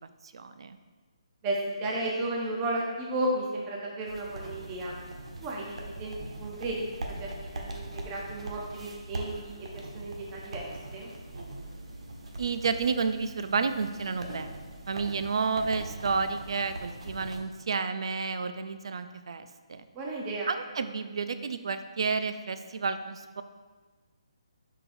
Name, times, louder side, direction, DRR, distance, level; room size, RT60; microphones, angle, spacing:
voice 1, 0.3-0.8 12.4-14.5 14.9-19.8 20.5-23.4, right 5 dB, 55° right, 10 dB, 0.4 m, -31 dB
voice 2, 1.4-5.0 5.4-7.3 7.5-11.1 19.9-20.5, right 1 dB, 15° right, -2 dB, 0.6 m, -34 dB
sound 1, 4.1-17.4, right 2 dB, 80° right, 1.2 m, -41 dB
11.0 x 4.9 x 2.6 m, 1.4 s
hypercardioid pair, 170°, 3 cm